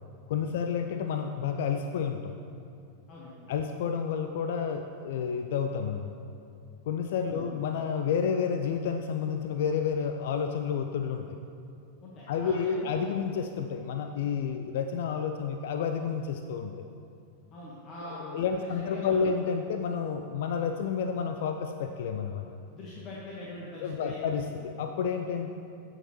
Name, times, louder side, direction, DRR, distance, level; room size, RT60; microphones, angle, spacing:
voice 1, 0.3-2.3 3.5-6.1 6.9-11.4 12.3-16.7 18.0-22.5 23.8-25.5, left 6 dB, 55° left, 6 dB, 0.4 m, -30 dB
voice 2, 3.1-3.5 7.3-7.5 12.0-13.1 17.5-19.4 22.7-24.2, left 1 dB, 35° left, -5 dB, 1.4 m, -43 dB
15.0 x 6.3 x 3.1 m, 2.5 s
figure-of-eight pair, 90°, 0 cm